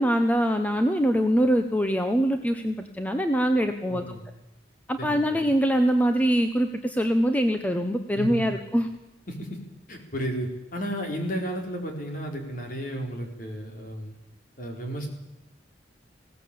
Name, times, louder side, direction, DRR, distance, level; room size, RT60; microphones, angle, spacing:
voice 1, 0.0-4.1 4.9-8.9, equal, 10° left, 6 dB, 1.0 m, -23 dB
voice 2, 3.9-4.2 5.0-5.4 8.1-8.5 9.3-9.6 9.9-14.1 14.6-15.1, right 1 dB, 45° left, 2 dB, 4.5 m, -33 dB
20.5 x 17.0 x 8.6 m, 0.97 s
head